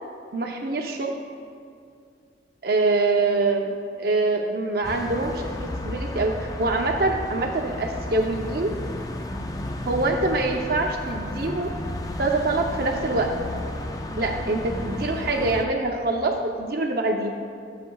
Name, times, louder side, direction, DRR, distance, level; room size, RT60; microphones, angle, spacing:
voice 1, 0.3-1.1 2.6-3.7 4.0-8.7 9.8-11.7 12.2-13.3 14.2-17.3, right 2 dB, 55° right, 2 dB, 0.6 m, -24 dB
sound 1, 4.8-15.7, left 1 dB, 20° left, 0.4 m, -33 dB
20.5 x 7.4 x 2.3 m, 2.3 s
head